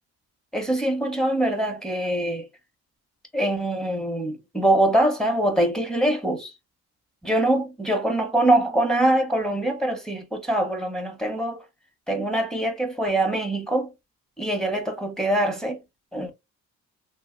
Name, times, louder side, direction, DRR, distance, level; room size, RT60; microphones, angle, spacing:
voice 1, 0.5-2.5 3.3-6.5 7.2-11.6 12.1-13.9 14.4-15.8 16.1-16.3, right 1 dB, ahead, 0.8 m, -23 dB
2.6 x 2.0 x 3.7 m
cardioid pair, 90°, 30 cm